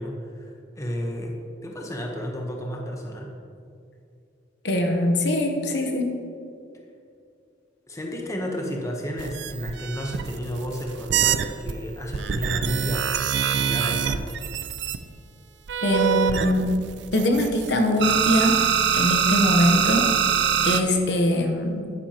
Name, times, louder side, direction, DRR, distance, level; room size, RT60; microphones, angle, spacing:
voice 1, 0.0-3.3 7.9-13.1 13.5-14.2, equal, 15° left, 0 dB, 0.9 m, -32 dB
voice 2, 4.6-6.2 15.8-16.8 17.1-18.6 18.9-20.1 20.6-21.9, left 1 dB, 65° left, 3 dB, 1.0 m, -22 dB
sound 1, 9.2-11.7 12.1-15.0 15.7-17.7 18.0-20.8, right 8 dB, 65° right, 0.4 m, -24 dB
10.0 x 9.6 x 2.9 m, 2.5 s
head